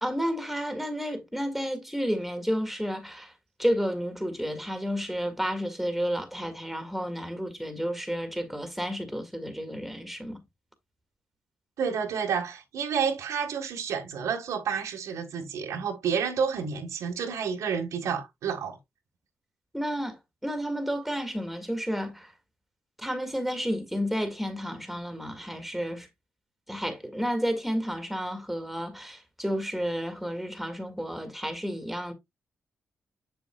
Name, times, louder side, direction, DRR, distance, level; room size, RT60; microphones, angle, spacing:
voice 1, 0.0-3.3 3.6-10.4 19.7-22.3 23.0-26.1 26.7-32.1, equal, ahead, 1.9 m, -31 dB
voice 2, 11.8-18.8, right 6 dB, 90° right, 1.5 m, -30 dB
7.0 x 7.0 x 2.3 m
cardioid pair, 75°, 5 cm